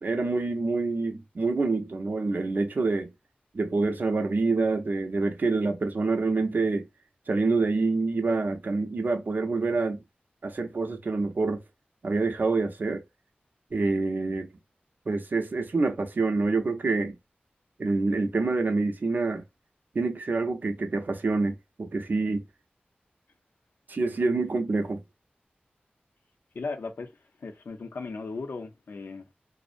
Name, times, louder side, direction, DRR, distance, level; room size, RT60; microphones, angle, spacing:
voice 1, 0.0-3.1 3.5-6.8 7.3-10.0 10.4-11.6 12.0-13.0 13.7-14.5 15.1-17.1 17.8-19.4 19.9-22.4 23.9-25.0, right 3 dB, 60° right, 0.6 m, -26 dB
voice 2, 26.5-27.1 27.4-29.3, left 4 dB, 75° left, 0.5 m, -36 dB
2.5 x 2.0 x 2.4 m
wide cardioid pair, 80°, 4 cm